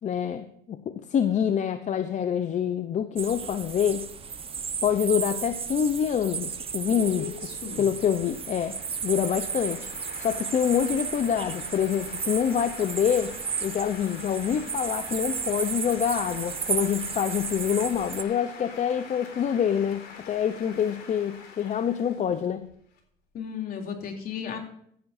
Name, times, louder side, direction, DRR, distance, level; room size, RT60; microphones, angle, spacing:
voice 1, 0.0-4.1 4.8-7.3 7.8-13.4 13.6-22.6, left 8 dB, 45° left, 10 dB, 0.8 m, -26 dB
sound 1, 3.2-18.2, right 6 dB, 35° right, 1.0 m, -34 dB
sound 2, 6.3-23.0, left 5 dB, 80° left, 3.9 m, -46 dB
voice 2, 7.0-7.9 23.3-24.6, left 7 dB, 60° left, 3 dB, 3.1 m, -35 dB
15.5 x 10.5 x 2.7 m, 0.67 s
cardioid pair, 110°, 17 cm